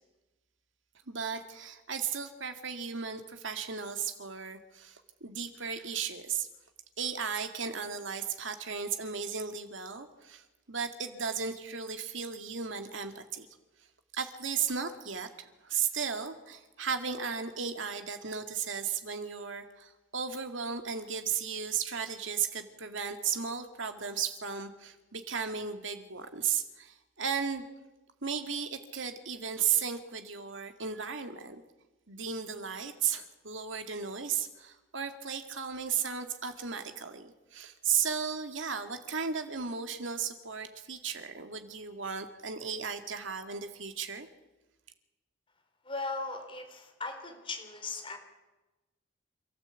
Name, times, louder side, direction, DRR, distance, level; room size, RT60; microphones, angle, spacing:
voice 1, 1.1-6.5 7.0-13.5 14.1-27.6 28.2-31.6 32.1-44.3, right 7 dB, 80° right, 7 dB, 2.1 m, -35 dB
voice 2, 45.9-48.2, left 3 dB, 25° left, 4 dB, 3.7 m, -38 dB
27.5 x 13.5 x 8.3 m, 1.1 s
head